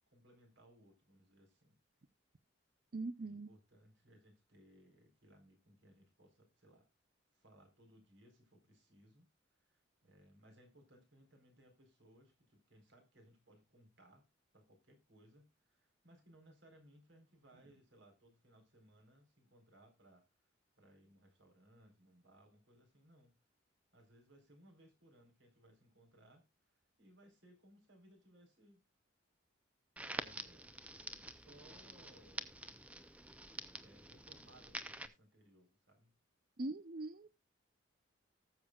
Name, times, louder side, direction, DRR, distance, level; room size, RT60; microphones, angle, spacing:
voice 1, 0.1-1.8 3.2-6.8 7.3-14.2 14.5-20.5 20.8-23.3 23.9-28.8 30.0-30.7 31.3-32.6 33.8-36.1, right 1 dB, 65° right, 4 dB, 4.2 m, -65 dB
voice 2, 2.9-3.5 36.6-37.3, right 2 dB, 50° right, 13 dB, 0.6 m, -41 dB
Crackle, 30.0-35.1, right 1 dB, 5° right, 0.6 m, -47 dB
19.5 x 7.1 x 2.4 m, 0.22 s
head